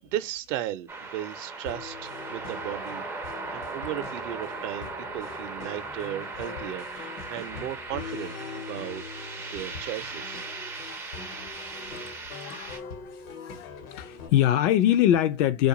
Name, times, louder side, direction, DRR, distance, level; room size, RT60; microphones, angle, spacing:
voice 1, 0.0-3.0 3.5-9.0 9.5-10.5, right 12 dB, 60° right, 0.6 m, -36 dB
sound 1, 0.9-12.8, right 3 dB, 5° right, 0.3 m, -38 dB
sound 2, 1.7-14.3, left 5 dB, 75° left, 1.1 m, -42 dB
voice 2, 10.9-11.7 12.4-15.7, left 11 dB, 60° left, 0.5 m, -25 dB
2.4 x 2.3 x 2.8 m
hypercardioid pair, 105°, 42 cm